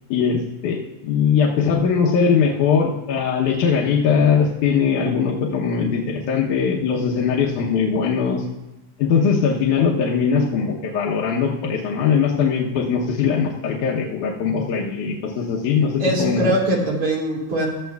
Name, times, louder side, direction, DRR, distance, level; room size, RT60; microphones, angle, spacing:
voice 1, 0.1-8.4 9.0-16.6, left 6 dB, 80° left, -3 dB, 2.3 m, -20 dB
voice 2, 16.0-17.7, right 1 dB, 50° right, -3 dB, 3.5 m, -22 dB
15.5 x 13.0 x 2.3 m, 1.0 s
omnidirectional pair, 3.6 m